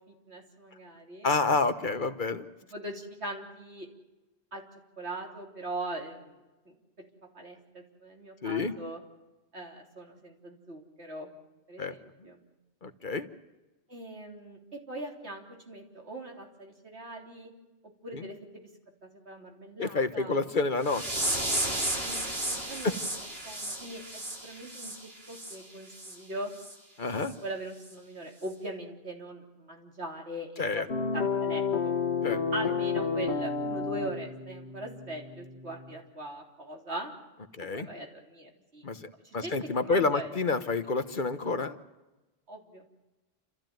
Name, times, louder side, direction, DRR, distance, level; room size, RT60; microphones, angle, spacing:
voice 1, 0.1-1.3 2.7-3.9 4.5-4.6 5.0-6.4 6.7-7.1 7.3-9.0 9.5-11.3 11.7-12.4 13.9-17.5 18.0-18.7 19.0-20.4 22.0-22.9 23.4-24.9 25.3-26.5 27.1-31.9 32.5-37.1 37.7-38.9 39.2-40.3 42.5-42.8, right 1 dB, 85° right, 1 dB, 3.8 m, -41 dB
voice 2, 1.2-2.5 8.4-8.7 11.8-11.9 12.8-13.3 18.1-18.3 19.8-21.4 22.8-22.9 27.0-27.3 30.6-30.9 32.2-32.4 37.5-37.9 38.8-41.8, left 3 dB, 50° left, 10 dB, 1.2 m, -29 dB
sound 1, 20.8-25.6 25.9-26.2 26.6-26.7 27.2-27.3 27.8-27.9, right 1 dB, 65° right, 4.2 m, -33 dB
sound 2, 30.9-35.9, left 5 dB, 85° left, 1.6 m, -31 dB
29.0 x 14.0 x 9.2 m, 1.1 s
omnidirectional pair, 1.1 m